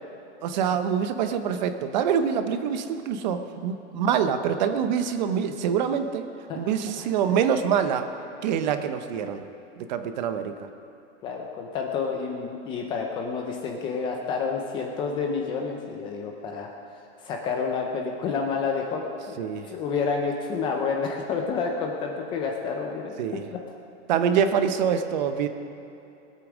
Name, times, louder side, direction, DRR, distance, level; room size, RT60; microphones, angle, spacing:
voice 1, 0.4-6.3 6.5-8.1 8.4-9.4 9.8-10.5 19.4-19.7 23.2-23.4 24.1-25.5, right 7 dB, 40° right, 9 dB, 0.8 m, -25 dB
voice 2, 11.2-16.7 17.2-23.1 23.5-23.6, left 5 dB, 15° left, 2 dB, 0.5 m, -29 dB
20.0 x 8.5 x 6.2 m, 2.8 s
supercardioid pair, 165°, 36 cm